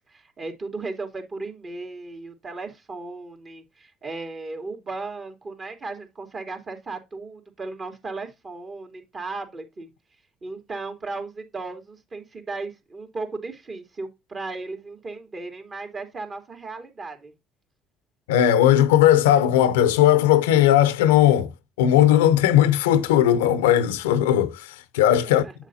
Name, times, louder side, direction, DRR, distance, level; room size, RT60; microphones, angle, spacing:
voice 1, 0.1-9.9 10.4-17.3 25.3-25.5, right 3 dB, 40° right, 3.1 m, -36 dB
voice 2, 18.3-21.5 21.8-25.4, left 11 dB, 90° left, 0.7 m, -18 dB
8.2 x 7.1 x 2.8 m
hypercardioid pair, 65°, 0 cm